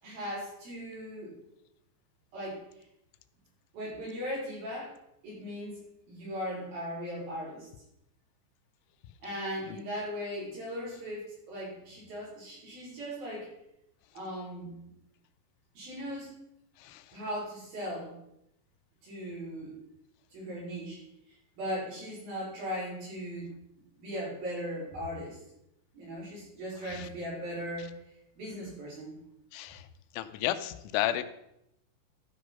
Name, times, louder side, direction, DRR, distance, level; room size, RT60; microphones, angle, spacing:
voice 1, 0.0-1.3 2.3-2.6 3.7-4.9 5.2-5.7 6.1-7.7 9.2-13.5 14.1-14.9 15.7-16.3 17.1-18.1 19.0-19.7 20.3-21.0 21.6-23.5 24.0-25.4 25.9-28.0 28.4-29.2, equal, 50° right, -6 dB, 6.3 m, -38 dB
voice 2, 29.5-29.8 30.1-31.2, left 13 dB, 90° left, 12 dB, 3.1 m, -32 dB
12.5 x 6.4 x 5.5 m, 0.81 s
omnidirectional pair, 5.4 m